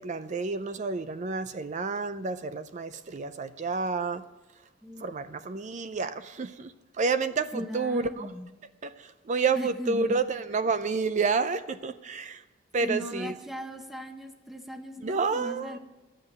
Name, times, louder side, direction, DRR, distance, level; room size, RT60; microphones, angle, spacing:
voice 1, 0.0-4.2 5.0-8.3 8.8-12.4 12.7-13.3 15.0-15.8, right 4 dB, 40° right, 12 dB, 0.5 m, -29 dB
voice 2, 7.5-8.5 9.6-10.2 12.8-15.8, equal, ahead, 6 dB, 0.8 m, -38 dB
11.0 x 7.6 x 7.8 m, 1.1 s
head